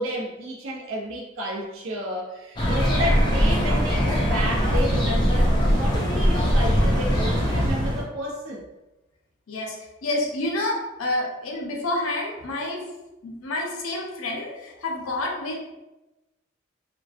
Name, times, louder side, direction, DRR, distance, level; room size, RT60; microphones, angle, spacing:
voice 1, 0.0-8.6, equal, 75° right, -1 dB, 0.4 m, -31 dB
sound 1, 2.6-8.0, equal, 20° left, 0.3 m, -21 dB
voice 2, 10.0-12.9 13.2-15.7, left 2 dB, 90° left, 0 dB, 0.5 m, -28 dB
2.4 x 2.1 x 2.4 m, 1.0 s
head